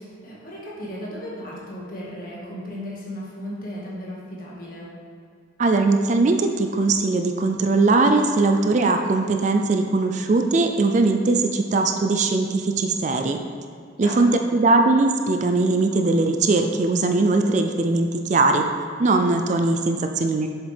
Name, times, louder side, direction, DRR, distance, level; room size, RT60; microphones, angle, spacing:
voice 1, 0.0-4.9 14.0-14.5, equal, 45° left, -5 dB, 1.8 m, -35 dB
voice 2, 5.6-13.4 14.0-18.6 19.0-20.5, right 3 dB, 40° right, 5 dB, 0.4 m, -20 dB
7.4 x 7.1 x 3.4 m, 2.2 s
head